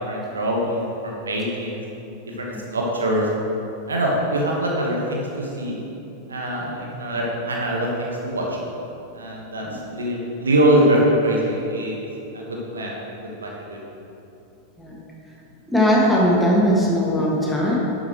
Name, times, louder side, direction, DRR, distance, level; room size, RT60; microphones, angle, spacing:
voice 1, 0.1-1.8 2.4-3.3 3.9-5.8 6.3-8.6 9.1-9.6 9.9-12.0 12.3-12.9 13.4-13.8, right 1 dB, 70° right, -2 dB, 1.6 m, -23 dB
voice 2, 15.7-17.7, equal, 5° left, -5 dB, 2.1 m, -19 dB
11.5 x 8.4 x 3.2 m, 2.9 s
figure-of-eight pair, 90°, 0 cm